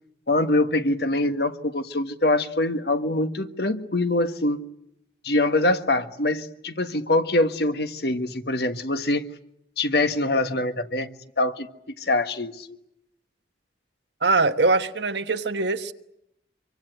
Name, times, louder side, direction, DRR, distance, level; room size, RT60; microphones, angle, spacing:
voice 1, 0.3-4.6 5.2-9.2 9.8-11.1 11.4-11.7 12.0-12.7, left 2 dB, 65° left, 1.6 m, -24 dB
voice 2, 14.2-15.9, right 3 dB, 75° right, 1.3 m, -22 dB
25.5 x 24.0 x 9.3 m
head